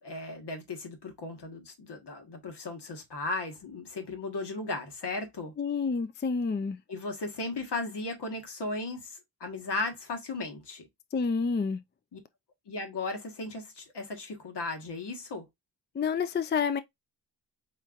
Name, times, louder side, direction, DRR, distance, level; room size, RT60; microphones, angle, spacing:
voice 1, 0.0-5.5 6.9-10.9 12.1-12.2 12.7-15.5, left 3 dB, 70° left, 1.5 m, -36 dB
voice 2, 5.6-6.8 11.1-11.8 15.9-16.8, left 5 dB, 25° left, 0.4 m, -28 dB
4.4 x 3.1 x 2.4 m
cardioid pair, 55°, 43 cm